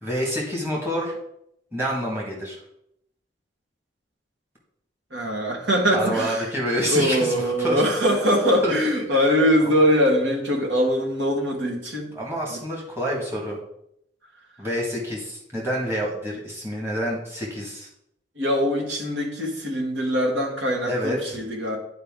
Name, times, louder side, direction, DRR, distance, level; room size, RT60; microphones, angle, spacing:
voice 1, 0.0-1.2 1.7-2.6 5.9-7.8 8.6-8.7 9.6-9.7 12.1-13.6 14.6-17.9 20.9-21.4, equal, 15° right, -3 dB, 1.8 m, -27 dB
voice 2, 5.1-12.1 12.5-12.6 18.4-21.8, equal, 75° right, 1 dB, 1.8 m, -22 dB
9.8 x 4.8 x 3.7 m, 0.77 s
head